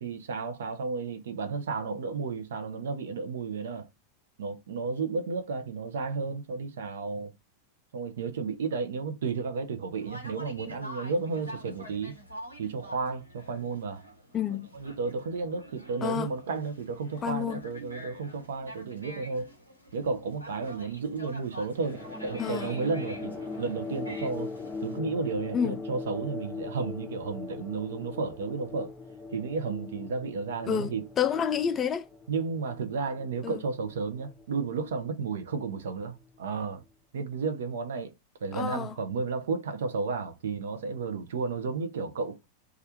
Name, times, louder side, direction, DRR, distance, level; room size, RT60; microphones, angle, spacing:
voice 1, 0.0-3.9 4.4-7.3 7.9-12.2 12.6-14.0 14.7-19.5 19.9-24.5 24.8-28.9 29.3-31.1 32.3-36.8 37.1-38.1 38.4-42.4, right 4 dB, 60° right, 0.7 m, -33 dB
Conversation, 10.0-25.0, equal, 90° right, 1.2 m, -47 dB
voice 2, 14.3-14.7 16.0-16.3 17.2-17.6 22.4-22.8 25.5-25.8 30.7-32.1 33.4-33.6 38.5-39.0, left 8 dB, 25° left, 0.3 m, -29 dB
sound 1, 21.7-36.6, left 3 dB, 5° left, 0.7 m, -41 dB
3.3 x 2.4 x 4.2 m
figure-of-eight pair, 90°, 0 cm